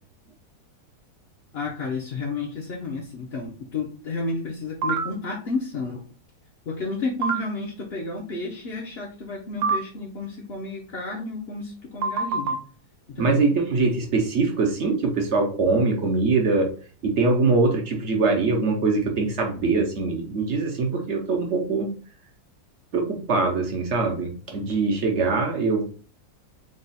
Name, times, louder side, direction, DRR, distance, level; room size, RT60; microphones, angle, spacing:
voice 1, 1.5-6.0 6.7-12.6 13.1-13.5, left 3 dB, 55° left, -2 dB, 0.7 m, -31 dB
sound 1, 4.8-5.1 7.2-7.4 9.6-9.8 12.0-12.6, right 4 dB, 85° right, 1.3 m, -23 dB
voice 2, 13.2-16.7 17.0-21.9 22.9-25.8, right 3 dB, 55° right, 1 dB, 0.8 m, -23 dB
3.8 x 2.3 x 4.1 m, 0.39 s
omnidirectional pair, 2.0 m